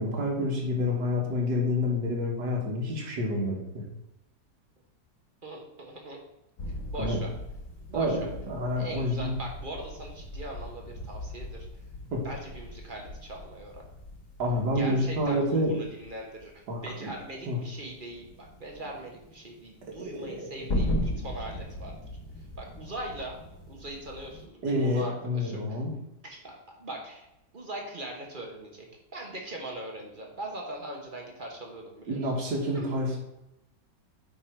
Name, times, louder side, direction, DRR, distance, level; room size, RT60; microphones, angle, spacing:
voice 1, 0.0-3.8 7.0-7.2 7.9-9.3 12.1-12.2 14.4-15.7 16.7-17.1 17.5-17.6 20.0-20.7 24.6-25.9 32.1-33.2, left 1 dB, 70° right, -2 dB, 2.0 m, -28 dB
voice 2, 5.4-6.2 6.9-7.3 7.9-8.3 8.8-11.7 12.2-13.8 14.7-21.9 22.6-23.4 23.7-25.8 26.2-26.5 26.8-27.3 27.5-28.9 29.1-32.3 32.7-32.9, right 1 dB, 35° right, 0 dB, 1.1 m, -41 dB
sound 1, 6.6-24.5, left 1 dB, 50° left, 1.6 m, -38 dB
8.8 x 3.8 x 4.4 m, 0.89 s
omnidirectional pair, 1.9 m